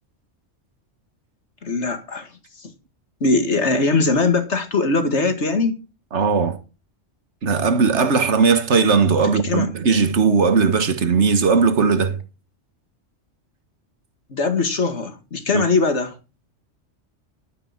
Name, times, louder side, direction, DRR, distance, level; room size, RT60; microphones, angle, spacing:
voice 1, 1.6-2.7 3.2-5.8 9.2-9.7 14.3-16.2, left 3 dB, 70° left, 2.2 m, -21 dB
voice 2, 6.1-6.6 7.4-12.2 15.5-15.6, right 5 dB, 70° right, 1.7 m, -18 dB
12.0 x 8.8 x 5.9 m
omnidirectional pair, 1.2 m